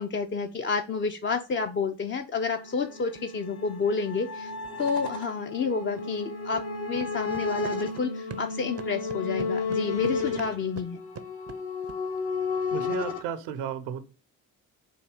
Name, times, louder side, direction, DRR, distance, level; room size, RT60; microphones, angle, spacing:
voice 1, 0.0-4.5 4.8-6.6 6.9-11.0, left 5 dB, 30° left, 0.4 m, -30 dB
sound 1, 2.6-13.2, left 4 dB, 65° left, 1.2 m, -33 dB
sound 2, 3.0-3.2 4.6-4.7 6.0-6.1 6.5-6.7 7.0-8.5 8.8-12.0, right 9 dB, 35° right, 0.5 m, -44 dB
voice 2, 12.7-14.0, right 9 dB, 80° right, 0.7 m, -33 dB
3.9 x 2.7 x 4.8 m
hypercardioid pair, 55°, 42 cm